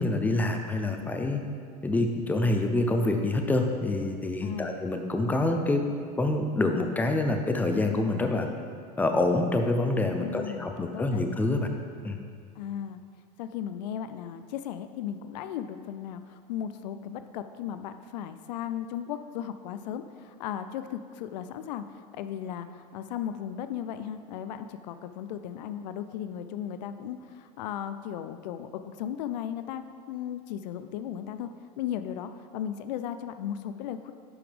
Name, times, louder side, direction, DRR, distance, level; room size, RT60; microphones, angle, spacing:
voice 1, 0.0-1.4 1.8-5.8 6.2-8.5 9.0-11.7 12.0-12.2, left 2 dB, 10° left, 4 dB, 0.6 m, -26 dB
voice 2, 4.4-4.7 10.2-11.2 12.6-13.0 13.4-34.1, left 9 dB, 80° left, 10 dB, 0.5 m, -36 dB
11.0 x 5.0 x 3.5 m, 2.2 s
supercardioid pair, 115°, 21 cm